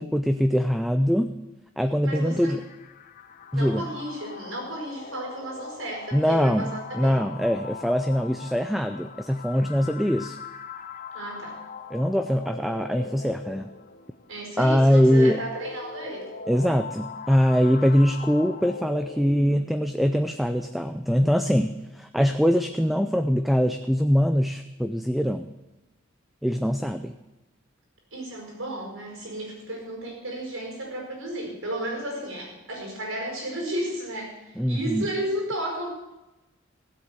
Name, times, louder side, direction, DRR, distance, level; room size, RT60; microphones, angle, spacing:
voice 1, 0.0-1.4 1.8-2.6 3.5-3.8 6.1-10.4 11.9-13.7 14.6-15.4 16.5-25.5 26.4-27.1 34.6-35.1, equal, ahead, 8 dB, 0.4 m, -23 dB
sound 1, 2.0-20.0, left 5 dB, 40° left, 0.6 m, -41 dB
voice 2, 2.0-2.5 3.5-7.2 11.1-11.6 14.3-16.3 28.1-35.9, right 1 dB, 85° right, 0 dB, 5.0 m, -33 dB
16.0 x 8.2 x 6.8 m, 1.0 s
head